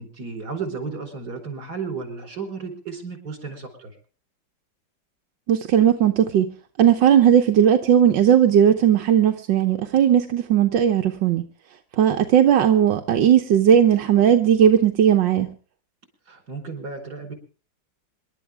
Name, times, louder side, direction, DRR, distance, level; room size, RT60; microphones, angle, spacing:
voice 1, 0.0-4.0 16.3-17.3, right 5 dB, 60° right, 5.1 m, -33 dB
voice 2, 5.5-6.5 6.8-11.4 12.0-15.5, right 9 dB, 85° right, 1.7 m, -17 dB
27.0 x 12.0 x 3.5 m
omnidirectional pair, 2.0 m